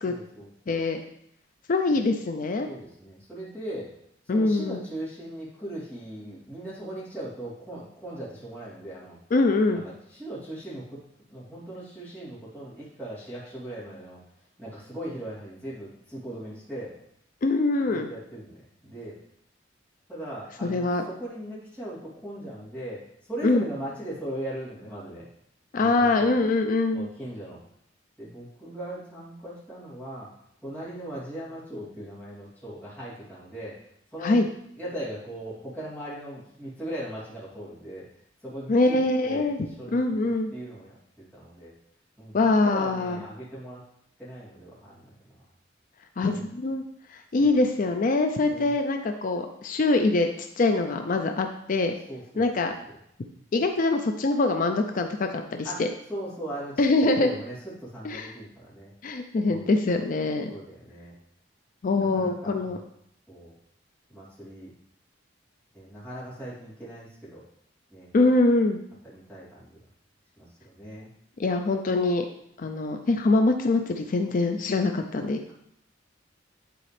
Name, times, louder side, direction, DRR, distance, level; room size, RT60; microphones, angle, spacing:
voice 1, 0.1-0.8 2.7-3.9 4.3-9.2 9.7-10.9 11.3-14.2 14.6-16.9 17.8-19.2 20.1-23.0 23.3-25.3 25.8-26.4 26.9-27.6 28.2-30.3 30.6-33.8 34.1-34.4 34.8-38.1 38.4-39.0 39.2-41.7 42.2-43.8 44.2-45.1 46.2-46.4 47.4-47.6 48.5-48.7 52.1-52.7 55.6-55.8 56.1-58.9 59.4-59.7 60.5-61.2 62.1-62.8 63.3-63.5 64.1-64.7 65.7-67.4 67.9-68.1 69.0-69.8 70.4-71.1, right 1 dB, 10° left, -9 dB, 2.7 m, -39 dB
voice 2, 0.7-1.0 1.7-2.7 4.3-4.8 9.3-9.9 17.4-18.1 20.6-21.0 23.4-23.6 25.7-27.1 34.2-34.5 38.7-39.6 39.9-40.5 42.3-43.2 46.2-46.8 47.1-50.3 50.6-51.9 52.4-52.7 53.5-55.9 56.8-57.3 58.0-58.3 59.0-60.5 61.8-62.8 68.1-68.8 71.4-72.3 72.6-75.5, left 2 dB, 45° left, 6 dB, 0.4 m, -24 dB
10.0 x 4.1 x 3.3 m, 0.74 s
head